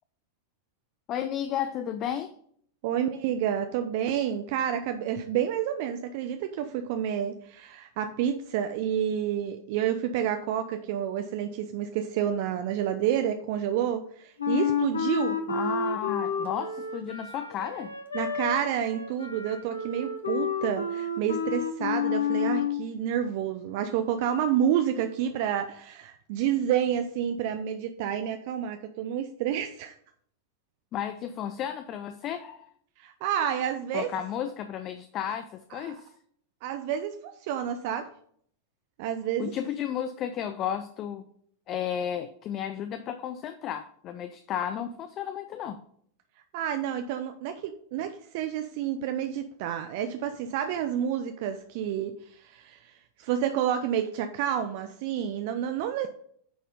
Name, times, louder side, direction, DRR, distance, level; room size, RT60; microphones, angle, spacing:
voice 1, 1.1-2.3 15.5-17.9 30.9-32.7 33.9-36.1 39.4-41.2 41.7-45.8, left 9 dB, 35° left, 10 dB, 0.5 m, -33 dB
voice 2, 2.8-15.4 18.1-29.9 33.0-34.1 35.3-35.4 35.7-35.9 36.6-38.1 39.0-39.5 46.5-52.9 53.2-56.1, right 9 dB, 50° right, 8 dB, 0.5 m, -29 dB
Wind instrument woodwind instrument, 14.4-22.8, left 6 dB, 75° left, 1.0 m, -30 dB
9.3 x 4.2 x 5.3 m, 0.64 s
figure-of-eight pair, 90°, 0 cm